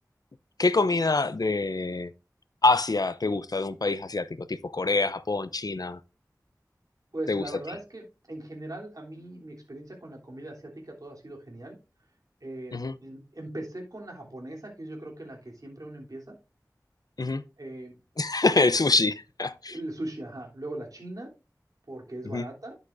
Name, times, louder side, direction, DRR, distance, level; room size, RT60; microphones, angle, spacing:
voice 1, 0.6-2.1 2.6-6.0 7.3-7.4 12.7-12.9 17.2-17.4 18.2-19.8 22.2-22.4, left 3 dB, 65° left, 0.6 m, -25 dB
voice 2, 7.1-11.8 12.4-16.3 17.6-18.0 19.7-21.3 21.9-22.8, right 1 dB, 60° right, 3.3 m, -39 dB
11.0 x 8.0 x 2.6 m
wide cardioid pair, 50°, 7 cm